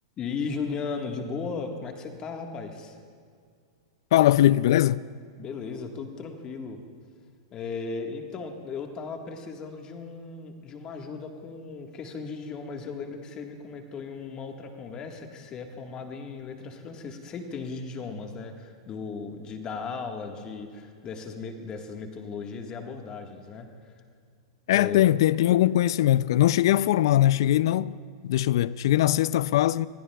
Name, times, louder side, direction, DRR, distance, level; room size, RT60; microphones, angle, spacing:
voice 1, 0.2-3.0 5.4-6.8 7.5-23.7 24.7-25.0, left 5 dB, 30° left, 1.5 m, -36 dB
voice 2, 4.1-5.0 24.7-28.0 28.2-29.9, left 13 dB, 70° left, 0.3 m, -21 dB
21.5 x 16.0 x 2.3 m
hypercardioid pair, 120°, 3 cm